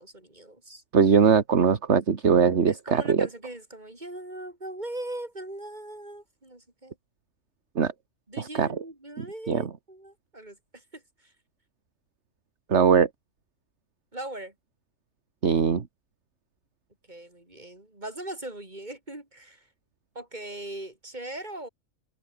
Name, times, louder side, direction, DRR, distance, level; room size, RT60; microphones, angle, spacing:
voice 1, 0.0-0.8 2.2-7.0 8.3-11.3 14.1-14.5 17.1-19.7 20.2-21.7, right 1 dB, 35° right, 5.5 m, -40 dB
voice 2, 0.9-3.3 7.8-7.9 8.4-8.7 9.2-9.7 12.7-13.1 15.4-15.8, right 6 dB, 60° right, 1.8 m, -21 dB
open air
omnidirectional pair, 1.3 m